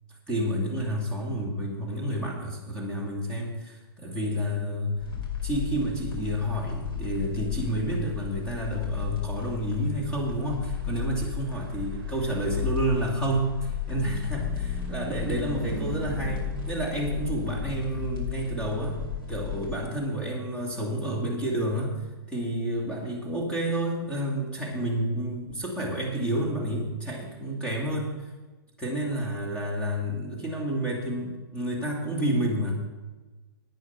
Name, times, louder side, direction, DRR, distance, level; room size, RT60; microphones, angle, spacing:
voice 1, 0.3-5.0 5.4-19.0 19.3-28.3 28.8-32.7, right 1 dB, 10° left, -3 dB, 2.4 m, -30 dB
sound 1, 5.0-19.8, left 10 dB, 65° left, 4.9 m, -34 dB
Car passing by / Truck, 11.2-25.0, right 4 dB, 25° right, 1.7 m, -44 dB
11.0 x 9.7 x 5.7 m, 1.2 s
hypercardioid pair, 145°, 13 cm